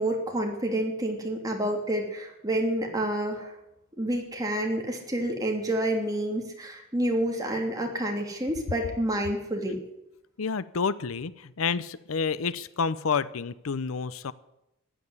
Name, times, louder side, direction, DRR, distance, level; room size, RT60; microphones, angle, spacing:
voice 1, 0.0-3.6 4.0-9.8, right 1 dB, 20° right, 1 dB, 2.8 m, -29 dB
voice 2, 10.4-14.3, left 5 dB, 85° left, 17 dB, 0.6 m, -29 dB
15.0 x 9.0 x 9.6 m, 0.87 s
head